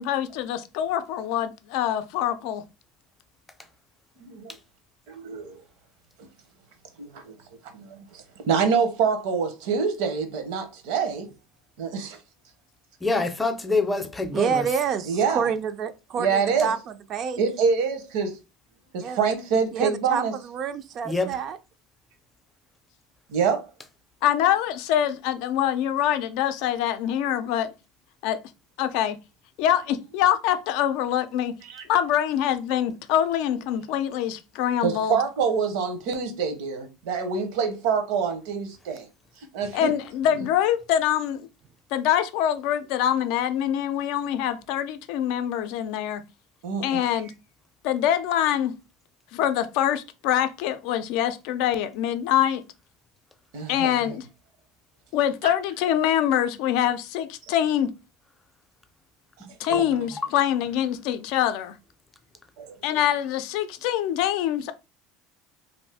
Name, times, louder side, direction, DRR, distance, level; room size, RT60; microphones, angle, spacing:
voice 1, 0.0-2.6 24.2-27.7 28.2-28.4 28.8-29.2 29.6-31.5 31.9-35.2 39.7-41.5 41.9-46.2 46.8-47.3 47.8-48.8 49.3-52.6 53.7-54.3 55.1-57.9 59.6-61.7 62.8-64.7, left 10 dB, 65° left, 0.4 m, -24 dB
voice 2, 4.2-4.6 5.1-5.6 7.0-7.3 7.7-11.3 11.8-12.2 15.1-15.5 16.2-16.7 17.4-18.4 18.9-20.3 23.3-23.7 31.7-31.8 34.8-39.1 39.5-39.9 46.6-47.1 53.5-54.1 55.4-55.5 59.7-59.9 62.6-63.0, right 6 dB, 75° right, 0.8 m, -26 dB
voice 3, 13.0-14.6 21.0-21.3 59.7-60.1, left 3 dB, 15° left, 0.5 m, -26 dB
voice 4, 14.3-17.4 19.0-19.2 19.7-21.6, right 7 dB, 45° right, 0.4 m, -28 dB
2.6 x 2.5 x 3.4 m
supercardioid pair, 115°, 0 cm